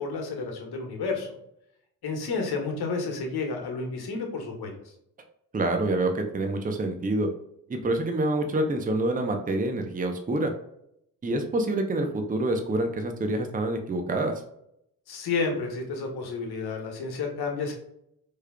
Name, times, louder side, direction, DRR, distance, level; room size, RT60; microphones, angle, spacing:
voice 1, 0.0-1.4 2.0-4.7 15.1-17.7, left 4 dB, 50° left, 2 dB, 1.3 m, -31 dB
voice 2, 5.5-7.3 7.7-10.5 11.2-14.3, right 2 dB, 15° right, 4 dB, 0.7 m, -27 dB
4.5 x 3.2 x 2.2 m, 0.75 s
hypercardioid pair, 50°, 48 cm